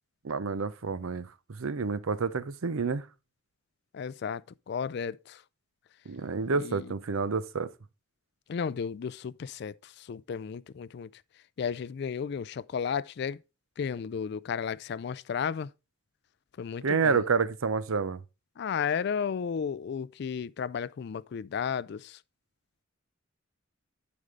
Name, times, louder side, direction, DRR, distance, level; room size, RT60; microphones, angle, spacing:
voice 1, 0.2-3.1 6.1-7.7 16.8-18.2, right 5 dB, 85° right, 0.7 m, -29 dB
voice 2, 3.9-5.4 6.5-6.9 8.5-11.1 11.6-13.4 13.8-15.7 16.6-17.2 18.6-22.2, left 6 dB, 55° left, 0.3 m, -33 dB
9.7 x 5.3 x 3.7 m
head